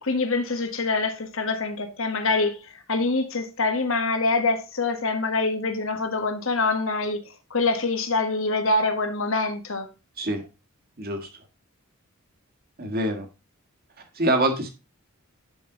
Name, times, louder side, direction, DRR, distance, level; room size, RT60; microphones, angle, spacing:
voice 1, 0.0-2.6 2.9-7.2 7.5-9.9, left 3 dB, 65° left, 1.5 m, -25 dB
voice 2, 11.0-11.3 12.8-13.3 14.2-14.7, right 1 dB, 45° right, 1.8 m, -25 dB
11.0 x 5.5 x 3.9 m
head